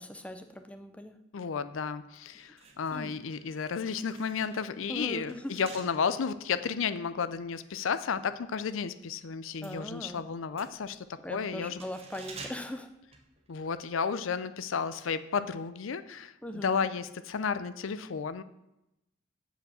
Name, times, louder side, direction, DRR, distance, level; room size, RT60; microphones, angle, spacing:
voice 1, 0.0-1.2 2.9-3.1 4.9-5.6 9.6-10.2 11.2-12.9 16.4-16.9, left 1 dB, 5° left, 8 dB, 0.5 m, -40 dB
voice 2, 1.3-11.8 13.5-18.4, left 6 dB, 75° left, 14 dB, 0.5 m, -33 dB
sound 1, 2.3-8.9 9.2-13.9 14.1-14.3, right 4 dB, 30° right, 1.1 m, -51 dB
7.8 x 5.1 x 7.1 m, 0.90 s
head